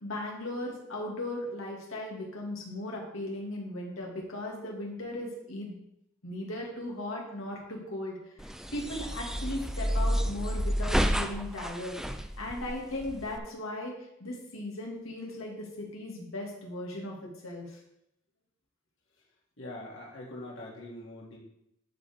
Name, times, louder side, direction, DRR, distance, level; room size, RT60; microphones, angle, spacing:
voice 1, 0.0-5.7 6.2-8.3 8.7-12.0 12.4-13.9 14.2-17.1 17.4-17.8, left 1 dB, 90° left, -1 dB, 2.2 m, -37 dB
sound 1, 8.4-13.4, equal, ahead, 0.3 m, -30 dB
voice 2, 19.6-21.4, left 1 dB, 70° left, -4 dB, 2.5 m, -43 dB
11.5 x 4.9 x 3.6 m, 0.79 s
head